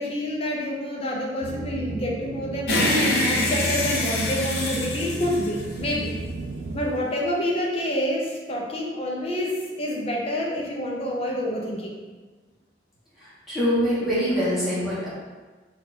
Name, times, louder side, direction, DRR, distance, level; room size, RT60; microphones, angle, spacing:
voice 1, 0.0-2.7 3.0-6.1 6.7-12.0, equal, 35° left, -2 dB, 0.7 m, -28 dB
sound 1, 1.4-6.9, right 2 dB, 70° right, 0.3 m, -33 dB
sound 2, 2.7-6.2, left 1 dB, 65° left, 0.7 m, -25 dB
voice 2, 13.2-15.1, equal, ahead, -11 dB, 1.2 m, -24 dB
4.5 x 2.6 x 4.2 m, 1.3 s
head